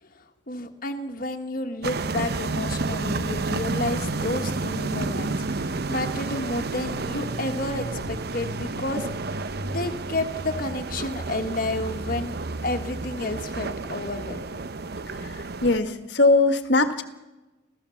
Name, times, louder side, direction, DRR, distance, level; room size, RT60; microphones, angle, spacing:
voice 1, 0.0-12.4 12.6-14.6, left 2 dB, 50° left, 5 dB, 1.7 m, -31 dB
sound 1, 1.8-15.8, right 3 dB, 55° right, 0.9 m, -30 dB
voice 2, 15.6-17.0, left 2 dB, 65° left, 9 dB, 1.6 m, -20 dB
27.0 x 16.0 x 7.1 m, 1.0 s
head